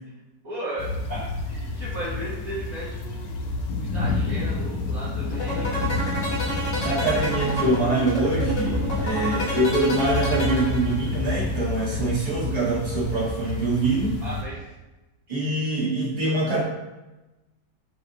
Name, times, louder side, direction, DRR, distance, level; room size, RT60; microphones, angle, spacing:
voice 1, 0.4-1.2 1.5-5.9 14.2-14.6, right 1 dB, 55° right, -9 dB, 2.3 m, -36 dB
sound 1, 0.8-14.4, left 3 dB, 70° left, 1.3 m, -29 dB
sound 2, 5.3-11.3, right 1 dB, 30° left, 2.2 m, -29 dB
voice 2, 6.8-14.2 15.3-16.6, right 2 dB, 20° right, -8 dB, 2.3 m, -24 dB
6.0 x 5.9 x 3.2 m, 1.0 s
omnidirectional pair, 1.9 m